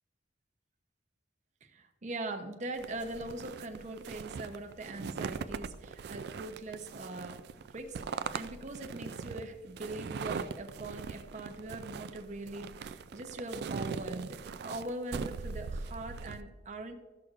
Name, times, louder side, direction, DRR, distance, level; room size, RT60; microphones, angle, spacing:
voice 1, 1.6-7.4 7.7-16.9, right 2 dB, 40° right, 4 dB, 0.7 m, -41 dB
sound 1, 2.8-16.4, right 5 dB, 55° right, 0.3 m, -40 dB
13.5 x 6.3 x 2.5 m, 1.3 s
head